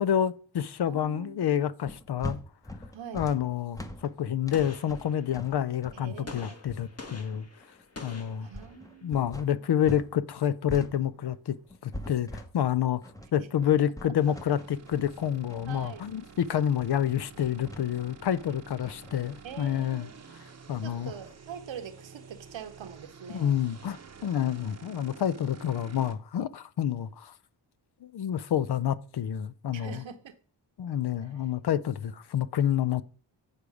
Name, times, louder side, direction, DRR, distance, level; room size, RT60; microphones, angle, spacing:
voice 1, 0.0-2.4 3.1-7.5 8.0-8.5 9.0-11.6 11.8-13.0 13.3-20.1 20.7-21.1 23.3-27.3 28.0-30.0 30.8-33.0, left 10 dB, 60° left, 0.6 m, -28 dB
voice 2, 0.9-1.6 2.9-3.3 5.9-6.6 8.4-9.6 13.4-13.5 15.7-16.1 19.4-20.3 20.8-23.6 29.7-30.4, right 8 dB, 80° right, 1.0 m, -44 dB
sound 1, 1.9-10.1 10.4-19.1, left 1 dB, 10° left, 0.8 m, -43 dB
Gunshot gunfire, 4.5-5.6 6.3-9.0, left 3 dB, 30° left, 1.4 m, -46 dB
sound 2, 14.2-26.1, right 5 dB, 35° right, 0.8 m, -50 dB
8.7 x 5.0 x 4.8 m
wide cardioid pair, 100°, 46 cm